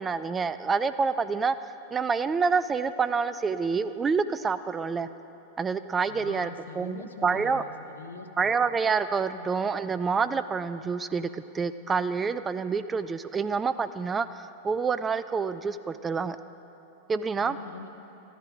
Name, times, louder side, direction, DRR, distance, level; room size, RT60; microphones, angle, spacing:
voice 1, 0.0-1.6 1.9-5.1 5.6-6.5 6.8-7.6 8.4-16.4 17.1-17.6, right 5 dB, 20° right, 13 dB, 0.3 m, -27 dB
voice 2, 6.1-8.5 9.3-9.5 17.3-17.9, left 4 dB, 70° left, 7 dB, 0.9 m, -43 dB
13.5 x 11.0 x 6.2 m, 3.0 s
figure-of-eight pair, 90°, 0 cm